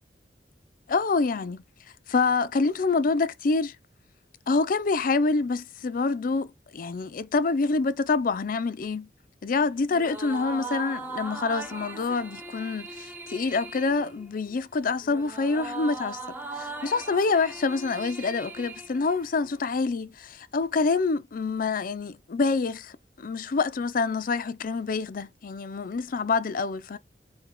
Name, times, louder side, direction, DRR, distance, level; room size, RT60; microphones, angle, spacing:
voice 1, 0.9-1.6 2.1-3.8 4.5-9.1 9.4-16.2 16.5-22.9 23.2-27.0, left 4 dB, 55° left, 0.5 m, -26 dB
sound 1, 9.9-19.6, right 3 dB, 10° right, 0.7 m, -39 dB
4.4 x 2.3 x 3.7 m
head